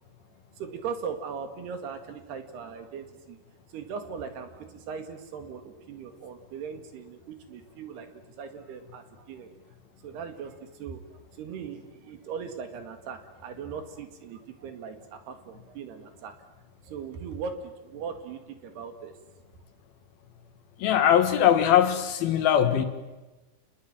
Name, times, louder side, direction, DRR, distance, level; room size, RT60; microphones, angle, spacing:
voice 1, 0.6-3.4 3.7-8.1 8.4-9.5 10.0-11.0 11.3-16.3 16.8-19.1, right 6 dB, 70° right, 7 dB, 4.0 m, -39 dB
voice 2, 20.8-22.9, left 10 dB, 70° left, 9 dB, 3.0 m, -21 dB
28.5 x 20.5 x 8.9 m, 1.1 s
omnidirectional pair, 5.0 m